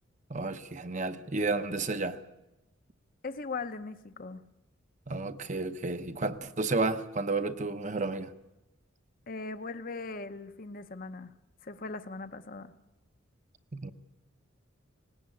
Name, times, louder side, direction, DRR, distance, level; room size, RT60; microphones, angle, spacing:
voice 1, 0.3-2.2 5.1-8.3 13.7-13.9, right 3 dB, 35° right, 0.8 m, -32 dB
voice 2, 3.2-4.5 9.3-11.3 11.6-12.7, left 3 dB, 45° left, 0.8 m, -39 dB
19.0 x 18.0 x 8.5 m
head